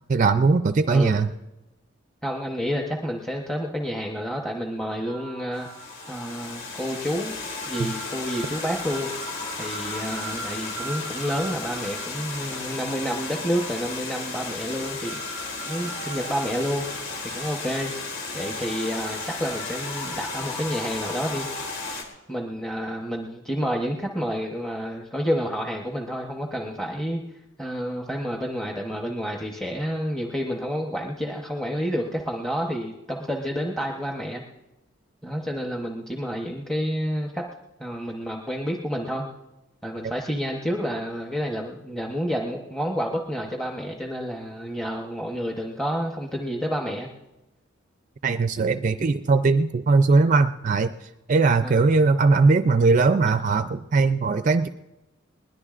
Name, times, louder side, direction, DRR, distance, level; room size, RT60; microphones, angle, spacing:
voice 1, 0.1-1.3 7.8-7.9 48.2-50.9 51.3-54.7, right 3 dB, 40° right, 10 dB, 0.4 m, -20 dB
voice 2, 2.2-5.7 6.1-7.4 7.7-9.1 9.6-15.2 15.6-17.9 18.3-21.5 22.3-27.2 27.6-34.4 35.2-37.4 37.8-39.3 39.8-47.1 51.6-51.8, equal, 5° left, 0 dB, 0.9 m, -29 dB
sound 1, 5.1-21.9, right 1 dB, 30° left, 6.4 m, -40 dB
Water, 5.5-22.0, left 4 dB, 85° left, 3.5 m, -35 dB
20.5 x 20.5 x 2.5 m, 0.99 s
head